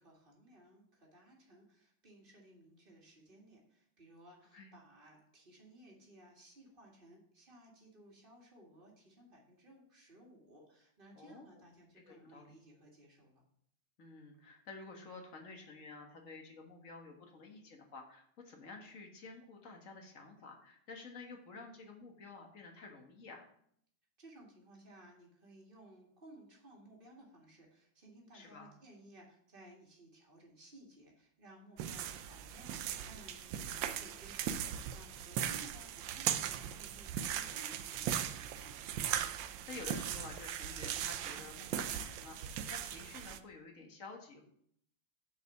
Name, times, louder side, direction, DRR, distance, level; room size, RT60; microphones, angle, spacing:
voice 1, 0.0-13.4 24.2-32.7 33.0-38.8, right 1 dB, 25° right, -1 dB, 2.1 m, -59 dB
voice 2, 11.1-11.5 11.9-12.5 14.0-23.5 28.3-28.7 39.4-44.4, left 3 dB, 45° left, 2 dB, 1.6 m, -51 dB
sound 1, 31.8-43.4, right 10 dB, 75° right, 1.2 m, -39 dB
7.0 x 5.0 x 7.0 m, 0.67 s
omnidirectional pair, 2.2 m